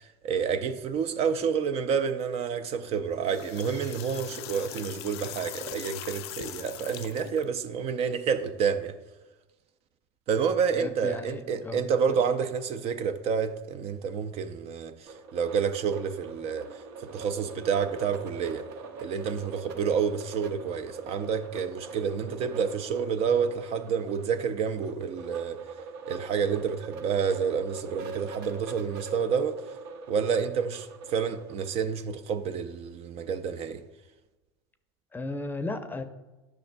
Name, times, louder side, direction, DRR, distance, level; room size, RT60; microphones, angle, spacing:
voice 1, 0.0-8.9 10.3-14.9 15.3-16.7 17.1-18.6 19.0-25.6 26.1-29.6 30.1-33.8, right 6 dB, 50° right, 0.5 m, -29 dB
sound 1, 3.1-7.4, left 13 dB, 80° left, 0.4 m, -41 dB
voice 2, 10.7-11.8 12.1-12.2 35.1-36.0, left 2 dB, 15° left, 0.6 m, -35 dB
sound 2, 15.1-31.8, right 3 dB, 70° right, 0.8 m, -43 dB
10.5 x 5.9 x 2.2 m
supercardioid pair, 95°, 13 cm